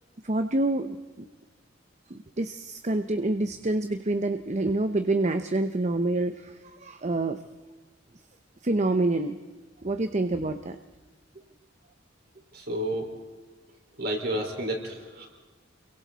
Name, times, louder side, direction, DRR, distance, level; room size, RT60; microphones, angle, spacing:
voice 1, 0.2-1.2 2.1-7.4 8.6-9.4 9.8-10.8, right 2 dB, 35° right, 8 dB, 0.8 m, -27 dB
voice 2, 12.5-13.1 14.0-15.3, right 1 dB, 55° right, 1 dB, 4.6 m, -30 dB
29.0 x 23.0 x 4.1 m, 1.3 s
head